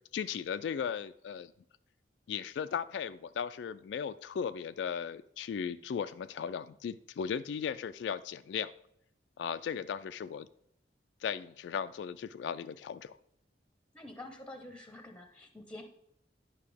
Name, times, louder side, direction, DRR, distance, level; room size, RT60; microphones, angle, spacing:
voice 1, 0.1-1.5 2.3-8.7 9.4-10.5 11.2-13.1, left 7 dB, 75° left, 11 dB, 0.3 m, -37 dB
voice 2, 13.9-15.8, left 1 dB, 5° left, 5 dB, 0.8 m, -47 dB
9.6 x 5.7 x 3.4 m, 0.75 s
head